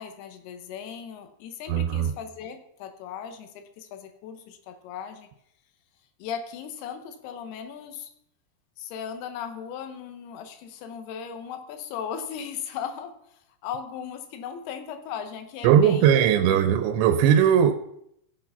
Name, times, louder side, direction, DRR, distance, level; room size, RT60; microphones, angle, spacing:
voice 1, 0.0-5.3 6.2-8.1 8.8-13.2 13.6-16.6, left 8 dB, 75° left, 2.9 m, -37 dB
voice 2, 1.7-2.1 15.6-17.7, right 9 dB, 90° right, 2.9 m, -19 dB
16.5 x 5.6 x 5.6 m
omnidirectional pair, 5.1 m